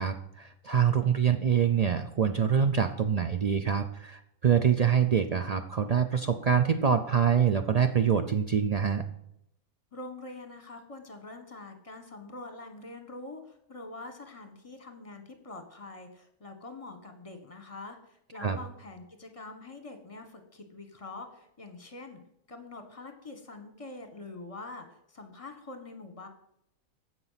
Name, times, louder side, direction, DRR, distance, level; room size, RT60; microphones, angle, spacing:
voice 1, 0.0-9.0 18.4-18.6, right 7 dB, 90° right, 8 dB, 0.3 m, -25 dB
voice 2, 9.9-22.2 22.5-26.3, left 2 dB, 25° left, 7 dB, 1.4 m, -45 dB
15.0 x 6.0 x 5.8 m, 0.77 s
omnidirectional pair, 1.5 m